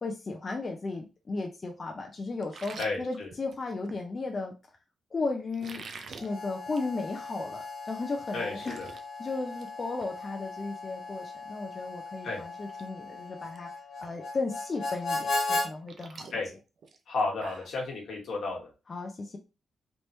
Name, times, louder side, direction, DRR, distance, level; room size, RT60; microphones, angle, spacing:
voice 1, 0.0-4.5 5.1-5.8 6.2-8.8 9.2-13.7 14.0-16.3 18.9-19.4, left 3 dB, 35° left, 2 dB, 0.5 m, -35 dB
sound 1, 2.4-4.0 5.5-6.3 6.7-6.9 7.3-7.4 7.9-8.0 8.2-9.0 9.4-9.7 10.0-10.1 12.0-12.1 12.5-12.8 13.1-13.6 14.0-14.1 15.5-17.8, right 5 dB, 60° right, 0.5 m, -46 dB
voice 2, 2.8-3.3 8.3-8.9 12.2-12.4 16.3-16.5 17.1-18.7, left 3 dB, 75° left, 0 dB, 1.2 m, -32 dB
Harmonica, 6.2-15.7, left 3 dB, 55° left, 0.9 m, -37 dB
3.3 x 2.9 x 2.7 m, 0.30 s
cardioid pair, 100°, 0 cm